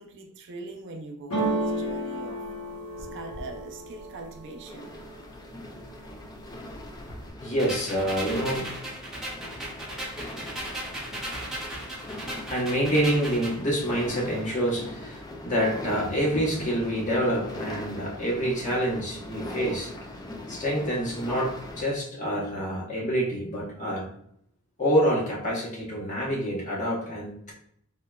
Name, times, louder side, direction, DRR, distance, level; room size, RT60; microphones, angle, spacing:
voice 1, 0.0-2.4 3.0-4.9, right 3 dB, 55° right, 3 dB, 0.5 m, -41 dB
sound 1, 1.3-5.2 5.6-6.2 6.5-7.3, right 1 dB, 90° left, 1.0 m, -32 dB
sound 2, 4.7-21.8, left 1 dB, 15° left, 0.3 m, -41 dB
voice 2, 7.4-8.7 12.5-19.9 20.5-24.1 24.8-27.5, equal, 35° left, -3 dB, 0.9 m, -27 dB
sound 3, 7.6-13.6, right 1 dB, ahead, 0.8 m, -36 dB
3.7 x 3.1 x 2.2 m, 0.69 s
head